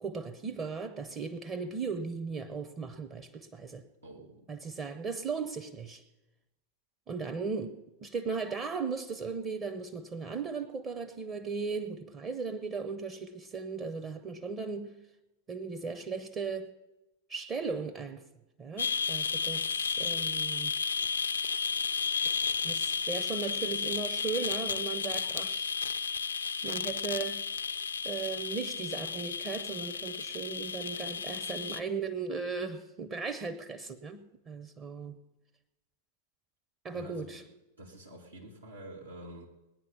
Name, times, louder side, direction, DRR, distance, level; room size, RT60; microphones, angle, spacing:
voice 1, 0.0-3.9 4.5-6.0 7.1-14.9 15.5-16.7 17.3-18.2 18.6-20.7 22.2-25.7 26.6-27.5 28.0-35.2 36.8-37.4, right 4 dB, 25° right, 0.9 m, -37 dB
voice 2, 4.0-4.5 36.9-37.4 37.8-39.5, right 1 dB, 80° right, 2.9 m, -48 dB
sound 1, 18.8-31.8, left 5 dB, 70° left, 0.5 m, -33 dB
20.0 x 9.6 x 5.7 m
figure-of-eight pair, 90°, 0 cm